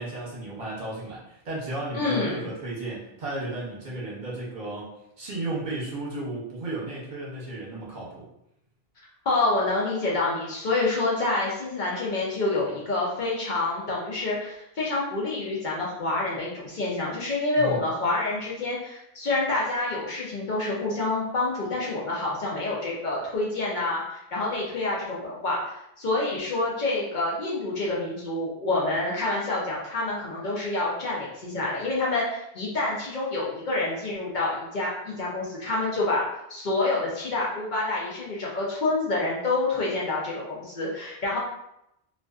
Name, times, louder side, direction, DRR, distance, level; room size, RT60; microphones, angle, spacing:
voice 1, 0.0-8.2 17.6-17.8, right 2 dB, 50° right, -6 dB, 0.9 m, -34 dB
voice 2, 1.9-2.5 9.2-36.2 36.5-41.4, left 2 dB, 55° left, -5 dB, 0.6 m, -27 dB
2.4 x 2.3 x 2.3 m, 0.82 s
omnidirectional pair, 1.0 m